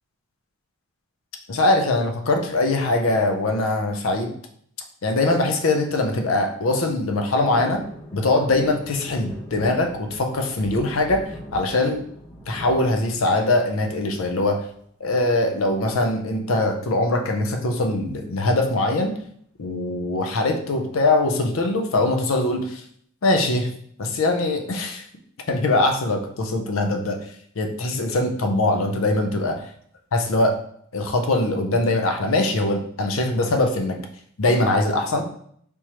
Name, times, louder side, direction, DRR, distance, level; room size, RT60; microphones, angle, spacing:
voice 1, 1.5-4.3 5.0-7.8 8.1-12.0 12.5-14.6 15.0-19.2 19.6-22.8 23.2-23.7 24.0-25.0 25.5-27.2 27.6-29.6 30.1-30.6 30.9-34.1 34.4-35.2, left 2 dB, 75° left, 4 dB, 0.6 m, -22 dB
sound 1, 7.5-13.7 14.1-14.7 16.0-16.4 16.7-16.8 17.1-17.4 18.2-19.1 19.6-19.7, equal, 20° left, 0.9 m, -41 dB
3.5 x 3.0 x 2.9 m, 0.63 s
head